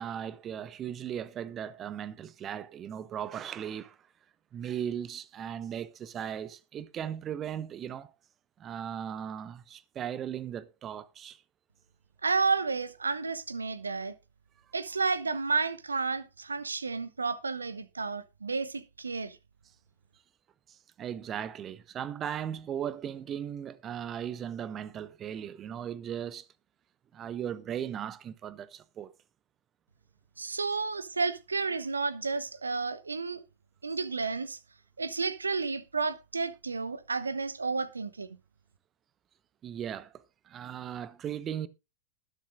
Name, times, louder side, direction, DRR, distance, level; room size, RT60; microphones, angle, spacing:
voice 1, 0.0-4.0 4.5-8.1 8.6-11.4 21.0-26.5 27.1-29.1 39.6-40.1 40.4-41.7, right 9 dB, 30° right, 0.9 m, -37 dB
voice 2, 12.2-14.1 14.7-19.4 30.4-33.4 33.8-34.6 35.0-38.3, right 4 dB, 75° right, 0.9 m, -31 dB
20.0 x 7.3 x 2.5 m
figure-of-eight pair, 90°, 0 cm